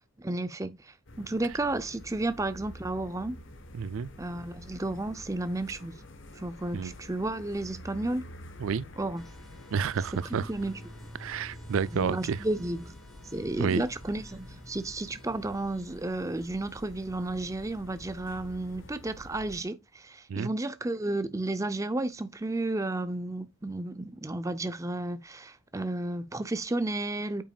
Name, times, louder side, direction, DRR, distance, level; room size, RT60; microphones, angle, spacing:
voice 1, 0.2-3.4 4.2-5.9 6.3-8.3 9.0-9.2 10.3-10.7 11.9-12.9 13.3-27.4, right 2 dB, 15° right, 0.5 m, -32 dB
sound 1, 1.1-19.6, left 1 dB, 60° left, 1.2 m, -48 dB
voice 2, 3.7-4.1 6.7-6.9 8.6-8.8 9.7-10.5 11.2-12.4 13.6-13.8 20.3-20.5, right 6 dB, 75° right, 0.4 m, -30 dB
sound 2, 9.2-18.9, equal, ahead, 1.8 m, -52 dB
8.5 x 6.0 x 2.3 m
head